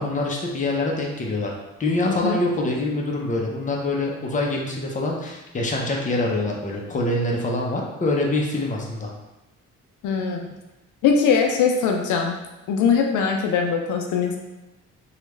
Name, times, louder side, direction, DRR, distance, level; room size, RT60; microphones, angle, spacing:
voice 1, 0.0-1.5 1.8-9.1, left 2 dB, 25° left, -1 dB, 0.7 m, -25 dB
voice 2, 2.0-2.4 10.0-10.5 11.0-12.3 12.7-14.4, left 6 dB, 75° left, 2 dB, 0.5 m, -21 dB
3.2 x 2.3 x 3.1 m, 1.0 s
cardioid pair, 90°, 30 cm